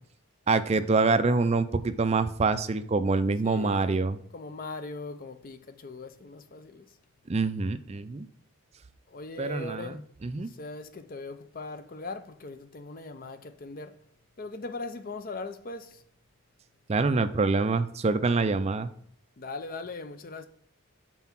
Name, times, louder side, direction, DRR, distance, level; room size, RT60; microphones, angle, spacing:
voice 1, 0.5-4.2 7.3-8.3 9.4-10.5 16.9-18.9, right 3 dB, 30° right, 0.4 m, -26 dB
voice 2, 3.4-4.0 4.3-6.9 9.1-10.0 10.5-14.0 14.4-16.0 19.4-20.5, left 3 dB, 40° left, 0.5 m, -40 dB
5.8 x 4.6 x 5.9 m
head